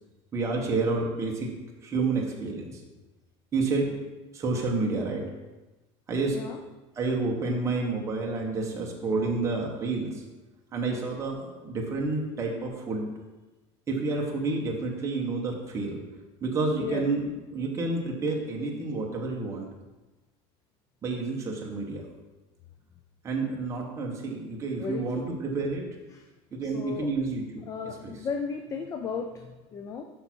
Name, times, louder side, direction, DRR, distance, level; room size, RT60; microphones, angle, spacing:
voice 1, 0.3-1.5 1.8-2.8 3.5-3.9 4.3-5.3 6.1-6.4 7.0-10.2 10.7-13.1 13.9-16.0 16.4-19.7 21.0-22.0 23.2-25.9 26.5-27.4 28.0-28.1, right 3 dB, 20° right, -1 dB, 1.1 m, -29 dB
voice 2, 6.3-6.6 16.8-17.1 24.8-25.3 26.1-26.3 26.6-27.1 27.7-30.0, left 5 dB, 25° left, 5 dB, 0.4 m, -35 dB
6.7 x 5.7 x 4.5 m, 1.1 s
cardioid pair, 160°, 15 cm